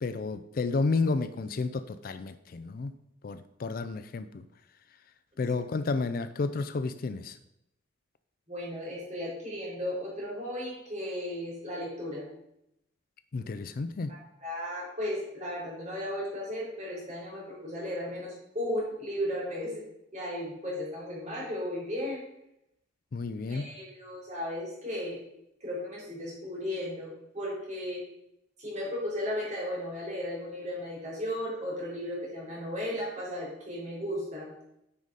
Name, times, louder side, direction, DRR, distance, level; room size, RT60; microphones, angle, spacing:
voice 1, 0.0-2.9 3.2-4.4 5.4-7.4 13.3-14.1 23.1-23.7, left 3 dB, 50° left, 12 dB, 0.4 m, -31 dB
voice 2, 8.5-12.2 14.1-19.8 20.1-22.2 23.5-25.2 25.6-28.0 28.6-34.5, left 1 dB, 40° right, -5 dB, 3.4 m, -35 dB
9.3 x 4.8 x 4.0 m, 0.81 s
head